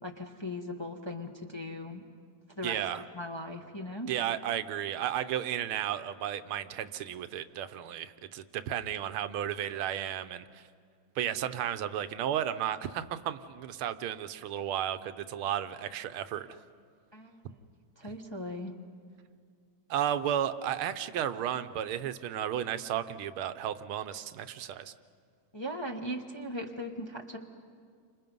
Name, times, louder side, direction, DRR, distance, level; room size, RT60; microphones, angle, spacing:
voice 1, 0.0-2.0 2.6-4.1 17.1-17.5 18.0-18.8 25.5-27.4, left 1 dB, 20° left, 1 dB, 0.9 m, -39 dB
voice 2, 2.6-3.0 4.1-10.6 11.2-16.6 19.9-24.9, right 10 dB, 85° right, 11 dB, 1.7 m, -33 dB
29.5 x 26.0 x 5.4 m, 2.1 s
omnidirectional pair, 2.3 m